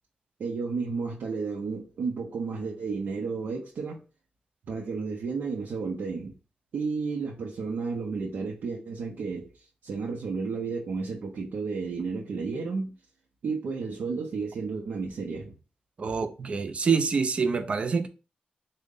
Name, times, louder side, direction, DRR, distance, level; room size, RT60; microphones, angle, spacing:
voice 1, 0.4-4.0 4.7-6.4 6.7-12.9 13.4-15.5 16.0-16.1, right 4 dB, 85° right, 0.6 m, -32 dB
voice 2, 16.0-18.1, right 5 dB, 40° right, 0.4 m, -26 dB
3.7 x 2.1 x 3.7 m
wide cardioid pair, 180°, 3 cm